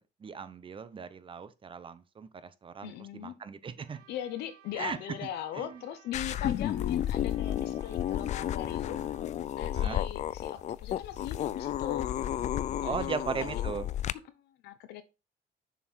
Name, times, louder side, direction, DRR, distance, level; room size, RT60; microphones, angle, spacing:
voice 1, 0.2-2.9 3.2-4.0 4.7-5.0 5.6-5.8 9.7-10.0 12.8-13.9, right 6 dB, 30° right, 0.7 m, -37 dB
voice 2, 2.8-3.4 4.1-9.0 9.6-12.1 12.8-13.5 14.3-15.0, left 10 dB, 80° left, 0.9 m, -40 dB
Trumpet, 3.8-9.3, right 8 dB, 90° right, 1.4 m, -60 dB
sound 1, 6.1-14.1, left 11 dB, 45° left, 0.4 m, -32 dB
6.9 x 4.4 x 4.5 m
cardioid pair, 110°, 17 cm